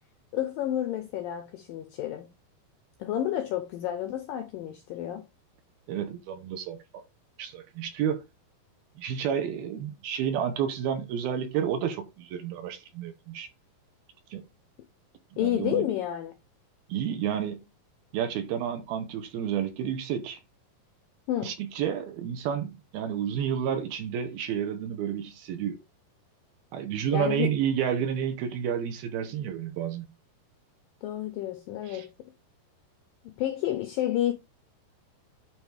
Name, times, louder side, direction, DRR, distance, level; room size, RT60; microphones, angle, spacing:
voice 1, 0.3-2.3 3.0-5.3 15.4-16.3 21.3-21.5 27.1-27.6 31.0-32.1 33.2-34.3, left 12 dB, 80° left, 2.0 m, -30 dB
voice 2, 5.9-7.0 7.4-8.2 9.0-13.5 14.3-14.5 15.3-15.9 16.9-17.6 18.1-20.4 21.4-25.8 26.7-30.1 31.9-32.1, right 9 dB, 75° right, 2.6 m, -30 dB
9.3 x 3.5 x 4.9 m
omnidirectional pair, 5.0 m